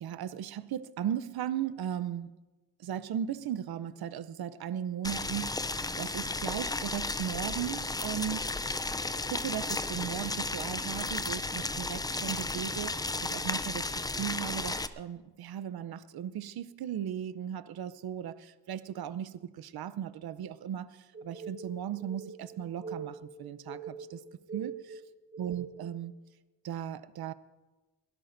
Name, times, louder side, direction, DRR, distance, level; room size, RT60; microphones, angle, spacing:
voice 1, 0.0-2.3 2.8-8.5 9.2-24.2 24.5-25.0 25.4-26.1 26.6-27.3, right 10 dB, 70° right, 0.7 m, -37 dB
Boiling, 5.0-14.9, left 2 dB, 10° left, 0.4 m, -34 dB
sound 1, 21.1-26.0, right 5 dB, 30° right, 1.6 m, -43 dB
23.0 x 17.0 x 2.6 m
cardioid pair, 95°, 39 cm